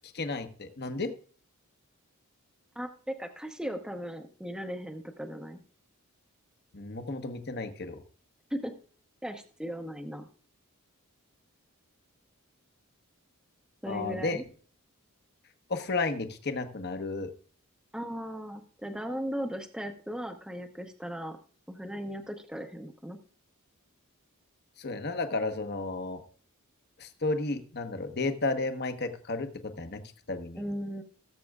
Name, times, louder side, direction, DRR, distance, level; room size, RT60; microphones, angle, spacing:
voice 1, 0.1-1.1 6.7-8.0 13.9-14.4 15.7-17.3 24.8-26.2 27.0-30.0 30.3-30.6, left 3 dB, 45° left, 7 dB, 1.1 m, -32 dB
voice 2, 2.8-5.6 8.5-8.7 9.2-10.3 13.8-14.4 17.9-21.4 21.7-23.2 30.6-31.0, equal, 5° right, 4 dB, 0.8 m, -37 dB
18.0 x 7.6 x 2.4 m, 0.43 s
head